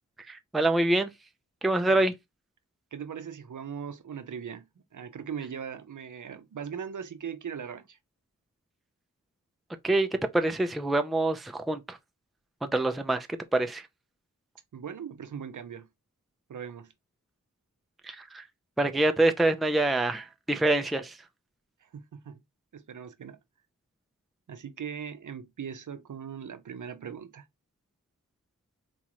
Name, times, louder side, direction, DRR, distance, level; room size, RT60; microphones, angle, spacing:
voice 1, 0.3-1.1 1.6-2.1 9.8-10.1 10.3-12.0 12.6-13.3 13.5-13.8 18.0-18.4 18.8-21.2, right 2 dB, ahead, 0.4 m, -25 dB
voice 2, 2.9-4.6 4.9-8.0 14.7-15.9 16.5-16.9 21.8-22.4 22.7-23.4 24.5-27.5, right 7 dB, 65° right, 0.6 m, -39 dB
4.1 x 2.4 x 2.9 m
wide cardioid pair, 90°, 33 cm